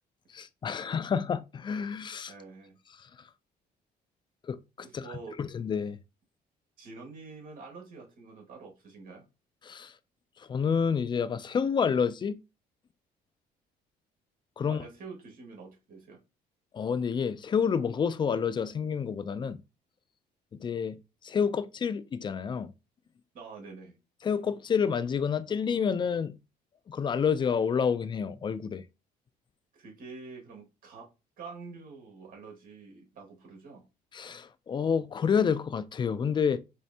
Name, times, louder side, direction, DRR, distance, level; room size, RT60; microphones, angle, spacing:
voice 1, 0.3-2.3 3.0-3.1 4.4-4.6 4.9-6.0 9.6-9.9 10.4-12.4 14.6-14.8 16.7-19.6 20.6-21.0 21.2-22.7 24.2-26.4 26.9-28.8 34.1-36.6, left 6 dB, 30° left, 0.3 m, -29 dB
voice 2, 2.3-2.8 4.8-5.4 6.8-9.2 14.6-16.2 23.3-24.0 29.7-31.1 31.4-33.9, right 4 dB, 55° right, 1.8 m, -46 dB
4.3 x 3.1 x 2.7 m
cardioid pair, 110°, 17 cm